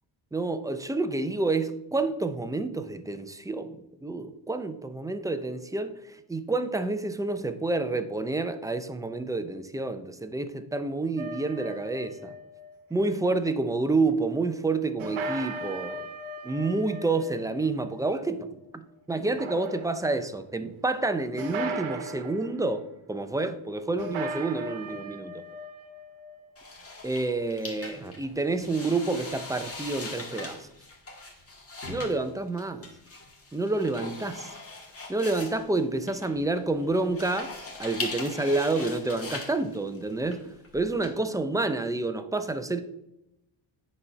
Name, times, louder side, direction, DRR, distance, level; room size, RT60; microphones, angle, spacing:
voice 1, 0.3-12.4 12.9-16.1 16.4-25.4 27.0-30.7 31.9-32.9 33.5-34.5 35.1-42.8, right 3 dB, 5° right, 0.5 m, -29 dB
sound 1, 11.2-13.2 15.0-18.7 19.2-20.2 21.4-22.5 24.0-26.7, right 2 dB, 75° right, 1.1 m, -38 dB
sound 2, 26.6-41.1, left 3 dB, 30° left, 1.9 m, -40 dB
8.5 x 4.1 x 5.8 m
cardioid pair, 130°, 48 cm